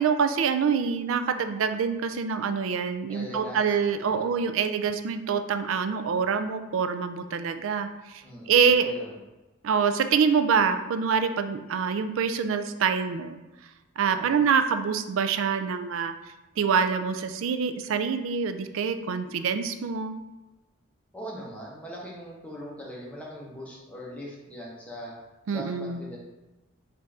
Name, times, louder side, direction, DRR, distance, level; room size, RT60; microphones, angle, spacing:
voice 1, 0.0-8.9 9.6-13.4 14.0-16.1 16.6-20.2 25.5-26.0, right 6 dB, 70° right, 9 dB, 0.4 m, -25 dB
voice 2, 3.1-3.7 4.0-4.3 8.2-9.2 14.1-14.4 21.1-25.2 25.5-26.2, equal, 5° left, -4 dB, 0.9 m, -40 dB
5.3 x 2.6 x 3.5 m, 1.1 s
head